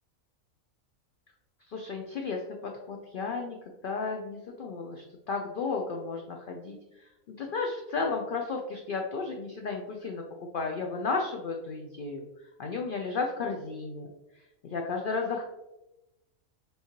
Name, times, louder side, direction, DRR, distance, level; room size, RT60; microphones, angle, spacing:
voice 1, 1.7-3.6 3.8-10.2 10.5-14.1 14.6-15.4, left 4 dB, 70° left, 1 dB, 0.5 m, -33 dB
5.5 x 3.1 x 2.8 m, 0.95 s
omnidirectional pair, 1.5 m